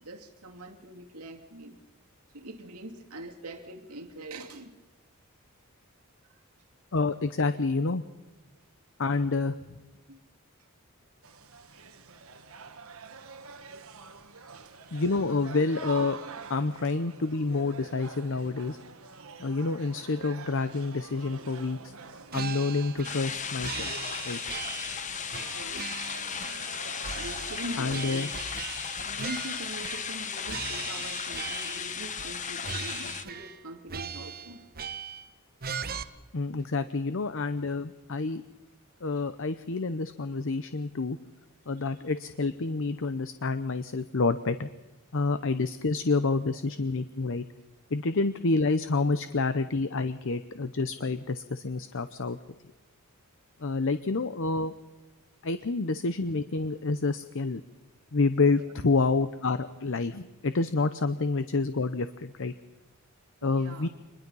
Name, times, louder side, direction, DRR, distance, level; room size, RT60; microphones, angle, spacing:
voice 1, 0.0-1.8 2.3-4.8 6.3-6.4 10.1-10.2 14.6-15.0 16.8-16.9 25.5-26.0 27.1-28.3 29.0-34.6 41.8-41.9 58.4-58.7 63.4-63.9, right 1 dB, 90° right, 3 dB, 2.5 m, -43 dB
voice 2, 6.9-8.0 9.0-9.6 14.9-16.2 16.5-18.8 19.4-21.9 22.3-23.9 24.2-24.4 27.8-28.3 36.3-38.4 39.0-41.2 41.7-44.7 45.1-47.4 47.9-52.4 53.6-54.7 55.4-57.6 58.1-62.5 63.4-63.9, left 3 dB, 60° left, 11 dB, 0.8 m, -28 dB
sound 1, 11.2-28.5, right 4 dB, 65° right, 1.4 m, -46 dB
sound 2, 22.3-23.3 23.6-25.0 25.3-26.8 27.0-30.2 30.5-31.8 32.2-32.4 32.6-33.6 33.9-35.3 35.6-36.0, right 6 dB, 40° right, 1.0 m, -39 dB
sound 3, 23.0-33.2, left 7 dB, 35° left, 1.1 m, -36 dB
25.5 x 21.5 x 5.5 m, 1.2 s
head